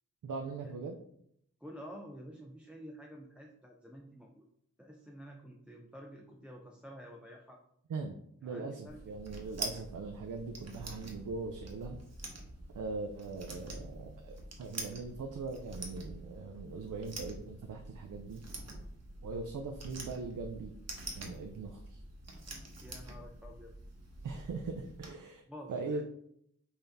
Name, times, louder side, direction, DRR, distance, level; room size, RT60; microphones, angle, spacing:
voice 1, 0.2-1.0 7.9-8.2 8.4-12.0 12.7-18.4 19.2-20.7 21.2-22.0 24.2-25.4 25.7-26.0, right 4 dB, 90° right, 4 dB, 0.5 m, -40 dB
voice 2, 1.6-4.5 4.8-7.6 8.4-9.0 22.8-23.7 25.5-26.0, equal, 5° right, 0 dB, 0.4 m, -50 dB
sound 1, 8.9-25.1, right 2 dB, 55° right, 0.9 m, -46 dB
5.6 x 2.7 x 3.4 m, 0.72 s
wide cardioid pair, 95°, 31 cm